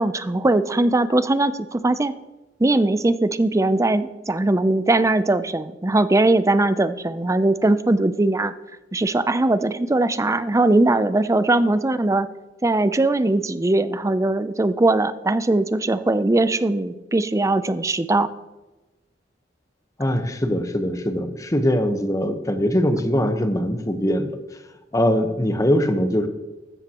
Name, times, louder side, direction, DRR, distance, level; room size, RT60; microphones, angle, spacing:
voice 1, 0.0-2.1 2.6-8.5 8.9-12.3 12.6-18.3, right 2 dB, 15° right, 13 dB, 0.5 m, -20 dB
voice 2, 20.0-24.3 24.9-26.3, equal, 20° left, 7 dB, 1.1 m, -21 dB
15.0 x 13.0 x 3.0 m, 1.1 s
head